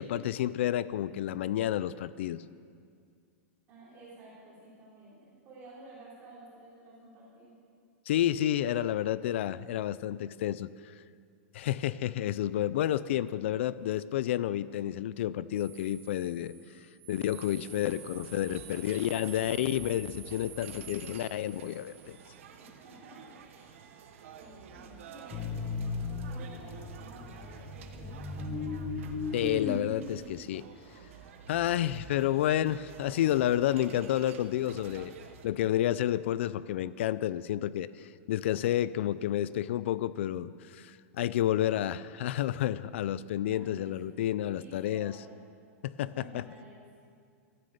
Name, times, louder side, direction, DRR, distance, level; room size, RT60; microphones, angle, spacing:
voice 1, 0.0-2.4 8.1-10.9 11.5-16.5 17.1-22.2 29.3-30.7 31.5-35.1 35.4-45.2 45.8-46.4, left 12 dB, 55° left, 17 dB, 0.4 m, -30 dB
voice 2, 3.7-7.5 12.7-12.8 22.6-23.7 24.1-28.7 43.5-43.9 44.5-45.3 46.1-46.8, right 2 dB, 25° right, -6 dB, 3.3 m, -52 dB
sound 1, 15.6-22.3, right 9 dB, 40° right, 2.1 m, -49 dB
sound 2, 17.3-35.5, right 7 dB, 65° right, 1.2 m, -51 dB
sound 3, 25.3-30.3, left 3 dB, 15° left, 0.9 m, -36 dB
13.5 x 9.8 x 7.9 m, 2.2 s
supercardioid pair, 170°, 8 cm